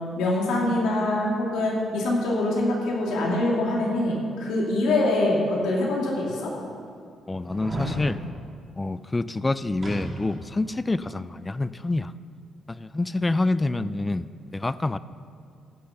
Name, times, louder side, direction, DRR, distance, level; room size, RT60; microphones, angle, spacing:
voice 1, 0.2-6.5, left 2 dB, 85° left, -3 dB, 2.7 m, -24 dB
sound 1, 5.5-5.6 6.3-6.4 7.4-8.0 9.8-10.5 10.8-10.9, right 1 dB, 35° right, 3.5 m, -33 dB
voice 2, 7.3-8.2 8.8-12.1 12.7-15.0, left 2 dB, 20° left, 16 dB, 0.4 m, -27 dB
15.0 x 6.5 x 5.9 m, 2.3 s
cardioid pair, 90°, 0 cm